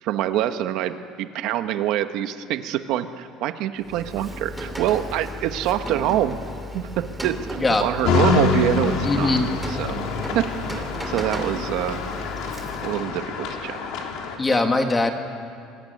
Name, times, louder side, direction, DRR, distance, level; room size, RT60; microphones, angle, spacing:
voice 1, 0.0-6.4 6.7-7.4 7.8-9.3 9.7-12.0 12.8-13.9, right 12 dB, 55° right, 8 dB, 1.3 m, -25 dB
Rain, 3.8-13.1, equal, 5° right, 2.6 m, -35 dB
sound 1, 8.0-14.4, left 4 dB, 60° left, 3.6 m, -26 dB
voice 2, 9.0-9.5 14.4-15.1, left 2 dB, 15° left, 5 dB, 2.0 m, -21 dB
26.5 x 21.0 x 10.0 m, 2.3 s
cardioid pair, 155°, 0 cm